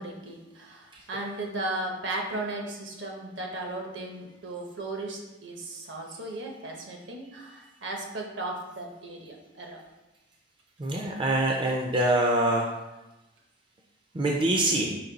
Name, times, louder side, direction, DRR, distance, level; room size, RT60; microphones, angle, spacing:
voice 1, 0.0-9.8, right 2 dB, 65° right, 1 dB, 0.8 m, -36 dB
voice 2, 10.8-12.7 14.1-14.9, right 1 dB, 25° right, 0 dB, 0.4 m, -24 dB
5.2 x 2.6 x 3.9 m, 1.0 s
head